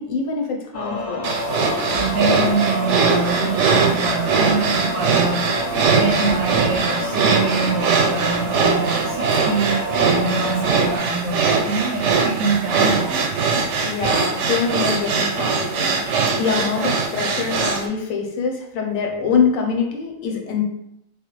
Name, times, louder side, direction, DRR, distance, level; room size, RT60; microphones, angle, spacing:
voice 1, 0.0-1.8 5.9-6.4 13.8-20.6, left 5 dB, 80° left, 2 dB, 1.1 m, -25 dB
sound 1, 0.7-11.0, equal, 20° left, 0.4 m, -28 dB
sound 2, 1.2-17.9, right 4 dB, 65° right, 0.9 m, -21 dB
voice 2, 1.9-9.8 10.0-13.3, right 4 dB, 90° right, -1 dB, 1.0 m, -25 dB
3.4 x 3.3 x 3.1 m, 0.82 s
omnidirectional pair, 1.4 m